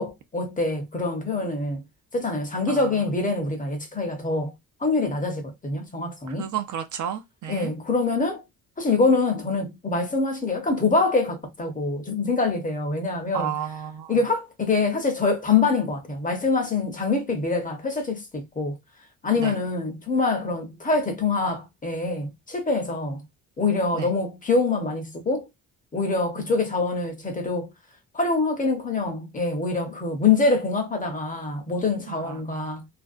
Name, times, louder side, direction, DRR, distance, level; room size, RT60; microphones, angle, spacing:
voice 1, 0.0-1.8 2.1-4.5 4.8-6.5 7.5-8.4 8.8-13.5 14.1-18.8 19.2-23.2 23.6-25.4 25.9-27.7 28.1-32.9, left 3 dB, 25° left, 0.6 m, -25 dB
voice 2, 6.3-7.7 13.3-14.2 19.3-19.6 23.9-24.1 26.4-26.5 32.1-32.7, right 9 dB, 60° right, 0.5 m, -32 dB
2.5 x 2.1 x 2.3 m
cardioid pair, 125°, 35 cm